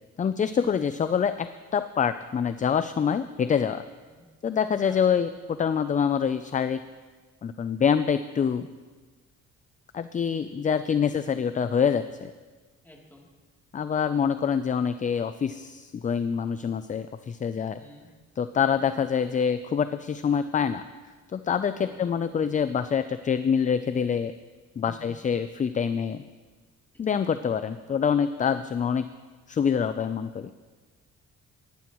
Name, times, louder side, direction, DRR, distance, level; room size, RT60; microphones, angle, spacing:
voice 1, 0.2-3.8 4.4-6.8 7.4-8.7 9.9-12.3 13.7-17.8 18.4-20.8 21.3-24.3 24.8-26.2 27.0-29.1 29.5-30.5, left 7 dB, 25° left, 11 dB, 0.4 m, -26 dB
voice 2, 12.8-13.3 17.8-18.1 21.8-22.2 24.8-25.2, left 1 dB, 5° left, -3 dB, 2.9 m, -50 dB
18.5 x 11.0 x 3.0 m, 1.4 s
cardioid pair, 90°, 30 cm